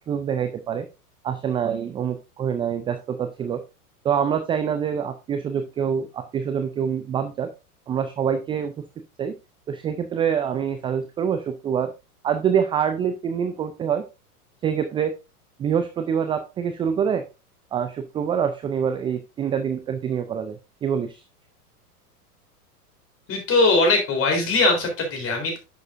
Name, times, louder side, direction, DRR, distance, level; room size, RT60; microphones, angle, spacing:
voice 1, 0.1-0.9 1.2-3.6 4.0-7.5 7.9-8.7 9.2-9.3 9.7-11.9 12.2-14.0 14.6-15.1 15.6-17.2 17.7-21.2, right 7 dB, 10° right, 8 dB, 0.4 m, -25 dB
voice 2, 23.3-25.6, left 2 dB, 30° left, 3 dB, 3.8 m, -20 dB
10.5 x 6.5 x 2.6 m, 0.27 s
hypercardioid pair, 105°, 45 cm